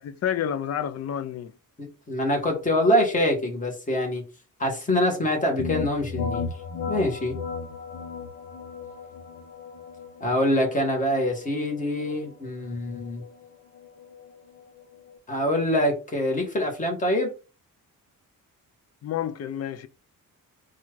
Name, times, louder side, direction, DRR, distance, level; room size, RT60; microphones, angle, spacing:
voice 1, 0.0-1.5 19.0-19.9, left 9 dB, 50° left, 0.5 m, -29 dB
voice 2, 1.8-4.2 4.6-6.5 6.9-7.3 10.2-13.2 15.3-17.3, left 1 dB, 20° left, 1.3 m, -25 dB
sound 1, 5.6-15.2, left 5 dB, 85° left, 0.8 m, -36 dB
4.2 x 2.4 x 4.5 m
wide cardioid pair, 175°, 34 cm